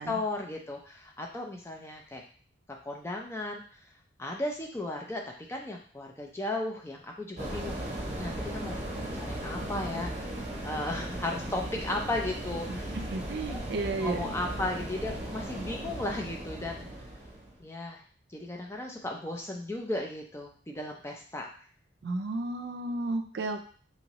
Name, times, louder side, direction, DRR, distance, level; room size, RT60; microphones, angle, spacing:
voice 1, 0.0-2.2 2.8-3.6 4.2-5.2 5.5-8.8 9.1-10.3 10.6-13.0 13.5-13.7 14.0-16.9 17.6-18.0 18.3-21.5, left 2 dB, 15° left, 1 dB, 0.4 m, -35 dB
sound 1, 7.4-17.6, right 1 dB, 35° right, 0.8 m, -37 dB
voice 2, 12.9-14.3 22.0-23.7, right 2 dB, 55° right, 6 dB, 0.4 m, -33 dB
3.0 x 2.7 x 2.9 m, 0.44 s
head